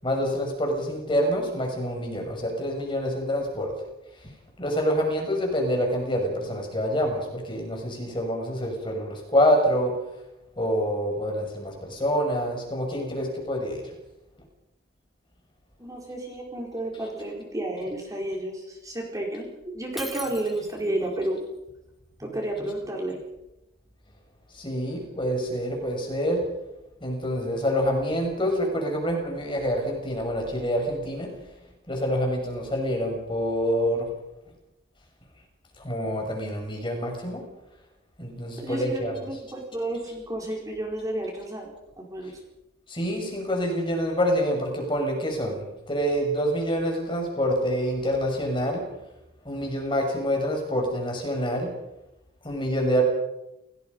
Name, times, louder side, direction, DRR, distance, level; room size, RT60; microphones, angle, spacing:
voice 1, 0.0-3.7 4.6-9.9 10.6-13.8 24.5-26.4 27.0-31.3 31.9-34.1 35.8-37.4 38.2-39.1 42.9-48.8 49.4-51.7 52.4-53.0, equal, 25° left, 2 dB, 6.5 m, -26 dB
voice 2, 15.8-21.4 22.2-23.2 38.6-41.7 42.0-42.4, right 1 dB, 20° right, 0 dB, 4.7 m, -31 dB
Shatter, 20.0-21.0, equal, ahead, 2.0 m, -39 dB
29.0 x 18.0 x 5.6 m, 0.92 s
head